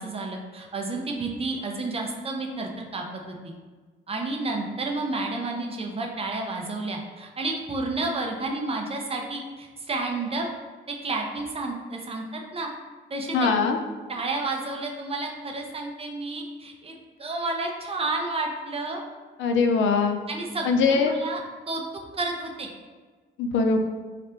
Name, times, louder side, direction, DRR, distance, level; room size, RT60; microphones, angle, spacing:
voice 1, 0.0-3.5 4.1-10.5 10.9-12.7 13.1-13.5 14.1-19.0 20.3-21.8 22.1-22.7, right 2 dB, 30° right, 1 dB, 0.6 m, -31 dB
voice 2, 13.3-13.8 19.4-20.2 20.7-21.2 23.4-23.8, left 4 dB, 75° left, 5 dB, 0.5 m, -21 dB
3.3 x 2.4 x 4.4 m, 1.4 s
cardioid pair, 90°, 20 cm